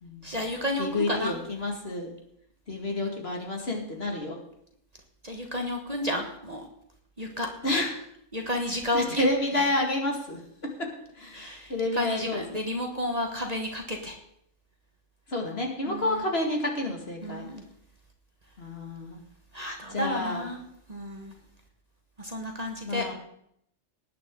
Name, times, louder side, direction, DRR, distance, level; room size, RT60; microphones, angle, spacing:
voice 1, 0.2-1.3 5.2-6.7 7.2-7.5 8.3-9.2 11.3-14.1 15.9-16.2 17.2-17.6 19.5-20.6 20.9-21.3 22.2-23.0, left 1 dB, 30° right, 3 dB, 1.4 m, -32 dB
voice 2, 0.8-2.1 2.7-4.4 7.6-8.0 8.9-10.4 11.2-12.6 15.3-17.5 18.6-19.2 19.9-20.4 22.8-23.1, left 2 dB, 50° left, 1 dB, 2.4 m, -29 dB
19.0 x 9.4 x 3.9 m, 0.73 s
omnidirectional pair, 1.4 m